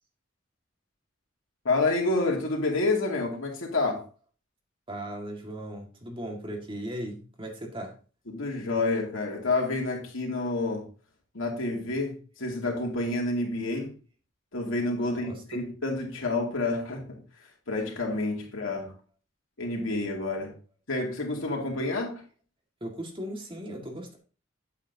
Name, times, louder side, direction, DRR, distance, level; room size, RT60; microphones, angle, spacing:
voice 1, 1.6-4.1 8.3-10.9 11.3-14.0 14.5-17.2 17.7-18.9 19.6-20.5 20.9-22.2, left 2 dB, 80° left, 2.6 m, -29 dB
voice 2, 4.9-7.9 15.1-15.6 22.8-24.2, right 1 dB, 25° right, 1.9 m, -37 dB
8.8 x 8.4 x 2.8 m
head